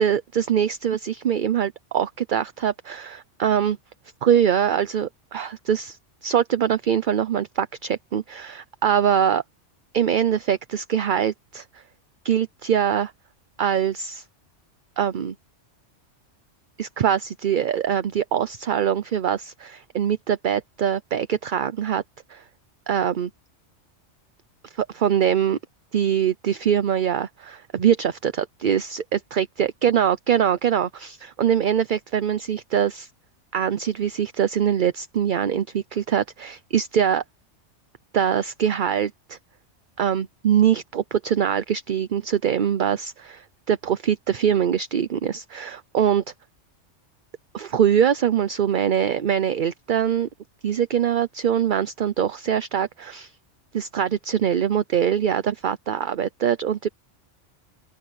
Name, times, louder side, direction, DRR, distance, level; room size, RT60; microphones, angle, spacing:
voice 1, 0.0-3.8 4.2-9.4 9.9-11.8 12.2-13.1 13.6-14.2 15.0-15.3 16.8-22.0 22.3-22.4 22.9-23.3 24.7-25.6 25.9-33.1 33.5-37.2 38.1-39.4 40.0-46.2 47.5-50.3 50.6-53.3 53.7-56.9, right 9 dB, 50° right, 0.8 m, -23 dB
open air
omnidirectional pair, 1.2 m